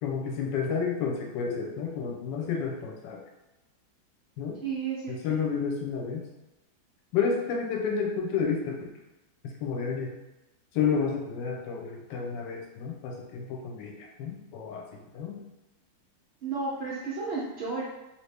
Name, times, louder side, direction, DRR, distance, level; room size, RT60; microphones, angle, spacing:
voice 1, 0.0-3.2 4.4-4.6 5.1-6.2 7.1-8.9 9.6-10.1 10.7-15.4, left 6 dB, 75° left, 0 dB, 1.3 m, -30 dB
voice 2, 4.6-5.1 16.4-17.8, right 4 dB, 75° right, -7 dB, 0.5 m, -32 dB
3.0 x 2.8 x 3.3 m, 0.98 s
omnidirectional pair, 2.1 m